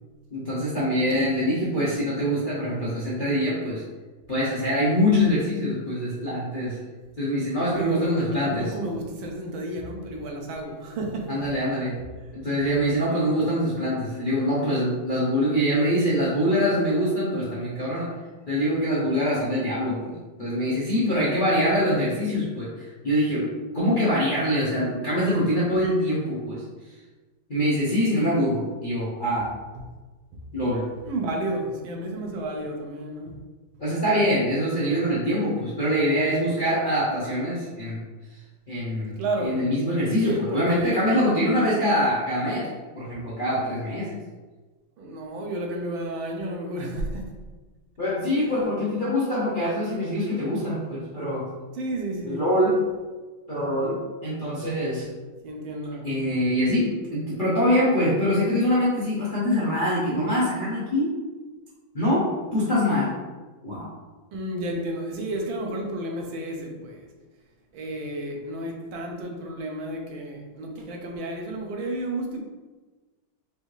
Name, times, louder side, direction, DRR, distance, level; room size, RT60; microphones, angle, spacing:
voice 1, 0.3-3.8 4.3-6.8 7.2-8.6 11.3-11.9 12.3-18.1 18.5-22.7 23.0-23.5 23.7-26.6 27.5-29.5 30.5-30.8 33.8-38.0 38.7-39.1 39.4-42.7 42.9-44.1 48.0-51.5 52.2-52.8 53.5-55.1 56.0-61.1 61.9-62.2 62.5-63.1 63.6-63.9, equal, 45° left, -9 dB, 0.6 m, -24 dB
voice 2, 1.1-1.7 7.7-11.5 21.1-21.5 29.7-29.8 31.0-33.4 39.2-39.6 40.2-41.0 45.0-47.3 48.4-48.5 51.7-52.4 55.4-56.1 64.3-67.1 67.7-72.4, right 1 dB, 80° right, 2 dB, 1.5 m, -32 dB
5.0 x 2.7 x 3.1 m, 1.3 s
omnidirectional pair, 2.2 m